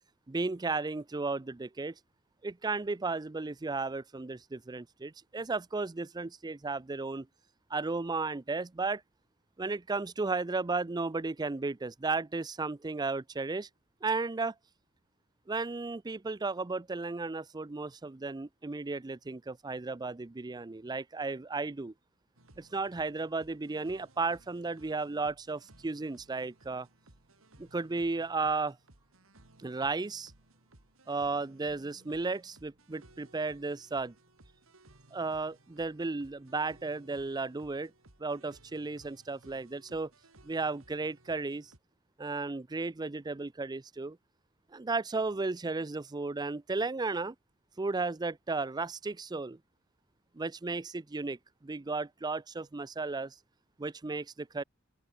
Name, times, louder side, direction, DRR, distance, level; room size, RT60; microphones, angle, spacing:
voice 1, 0.3-1.9 2.4-7.3 7.7-9.0 9.6-13.7 14.0-14.5 15.5-21.9 22.6-26.9 27.6-28.8 29.6-30.3 31.1-34.1 35.1-37.9 38.2-40.1 40.4-41.7 42.2-44.2 44.7-47.3 47.8-49.6 50.3-53.3 53.8-54.6, right 3 dB, 20° right, 0.5 m, -34 dB
sound 1, 22.3-41.8, right 2 dB, 75° right, 3.1 m, -61 dB
open air
head